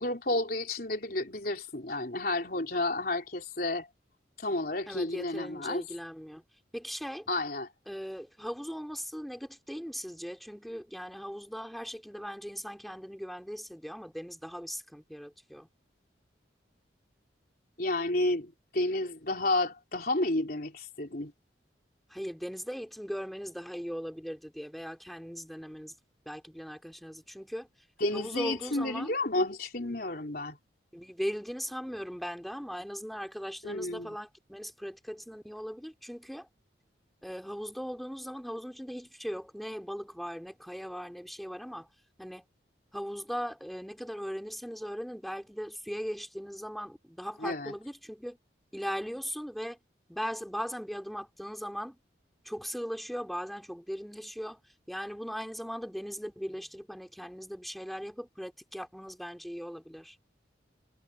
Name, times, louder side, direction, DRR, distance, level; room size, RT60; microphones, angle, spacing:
voice 1, 0.0-3.9 4.4-5.8 7.3-7.7 17.8-21.3 28.0-30.6 33.6-34.2 47.4-47.7, left 2 dB, 50° left, 3.8 m, -31 dB
voice 2, 4.9-6.4 6.7-7.3 7.9-15.7 22.1-26.0 26.2-27.7 28.1-29.1 30.9-36.5 37.2-41.9 42.2-42.4 42.9-48.4 48.7-49.8 50.1-52.0 52.4-54.6 54.9-60.2, equal, ahead, 3.2 m, -39 dB
head